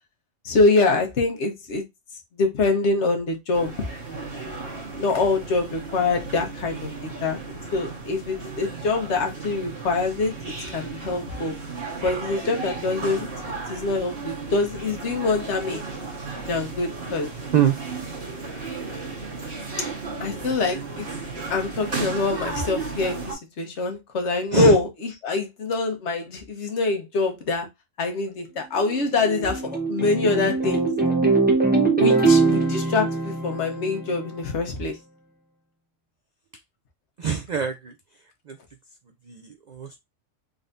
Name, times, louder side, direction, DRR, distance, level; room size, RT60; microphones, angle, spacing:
voice 1, 0.4-1.8 2.4-3.7 5.0-7.4 7.7-10.3 10.7-11.5 12.0-15.8 16.5-17.3 20.2-21.0 21.5-24.9 25.2-27.7 28.0-30.8 32.0-35.0, left 3 dB, 65° left, 1.2 m, -24 dB
sound 1, 3.5-23.3, right 4 dB, 45° right, 1.8 m, -34 dB
voice 2, 20.4-20.8 24.5-24.8 37.2-37.9 38.5-38.6 39.2-40.0, right 8 dB, 85° right, 0.4 m, -24 dB
sound 2, 28.8-34.4, right 3 dB, 10° right, 0.8 m, -22 dB
3.8 x 3.3 x 2.5 m
omnidirectional pair, 1.3 m